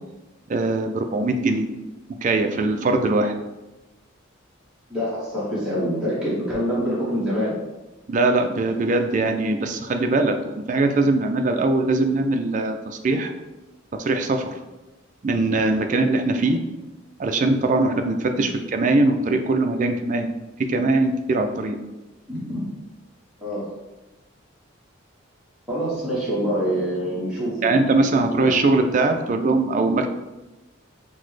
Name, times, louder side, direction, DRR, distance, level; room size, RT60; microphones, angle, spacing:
voice 1, 0.5-1.7 2.2-3.3 8.1-13.3 14.0-14.5 15.2-16.6 17.2-20.3 20.7-21.8 27.6-30.1, right 2 dB, 40° right, 5 dB, 0.3 m, -21 dB
voice 2, 4.9-7.5 22.3-22.7 23.4-23.7 25.7-27.7 28.0-28.4, equal, 5° right, -9 dB, 0.9 m, -25 dB
5.9 x 2.1 x 3.1 m, 1.1 s
head